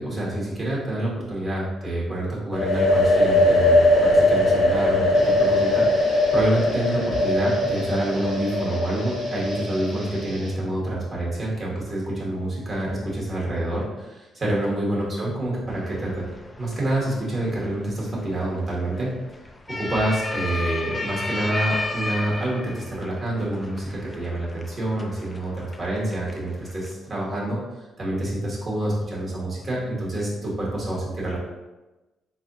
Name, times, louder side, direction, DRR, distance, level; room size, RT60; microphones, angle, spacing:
voice 1, 0.0-16.2 16.6-19.2 19.7-27.6 28.0-31.4, right 1 dB, 40° right, -5 dB, 1.3 m, -27 dB
sound 1, 2.5-10.2, left 1 dB, 70° left, 0.8 m, -20 dB
sound 2, 5.1-10.5, right 1 dB, 75° right, 1.1 m, -41 dB
sound 3, 15.7-26.9, left 2 dB, 20° left, 0.4 m, -34 dB
3.6 x 3.3 x 2.6 m, 1.1 s
cardioid pair, 90°, 0 cm